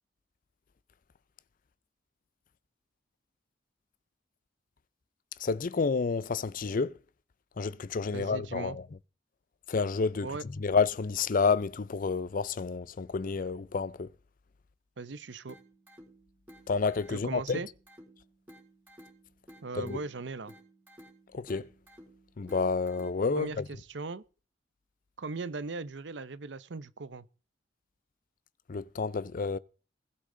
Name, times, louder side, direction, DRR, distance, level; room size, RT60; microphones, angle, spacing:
voice 1, 5.4-7.0 7.6-8.8 9.7-10.3 10.6-14.1 16.7-17.6 19.8-20.0 21.3-21.7 22.4-23.6 28.7-29.6, left 4 dB, 50° left, 0.5 m, -29 dB
voice 2, 8.1-8.8 10.2-10.4 15.0-15.6 17.1-17.7 19.6-20.5 23.4-24.2 25.2-27.2, right 3 dB, 70° right, 0.7 m, -38 dB
sound 1, 15.5-23.5, equal, 10° right, 4.1 m, -56 dB
20.5 x 8.4 x 3.8 m
head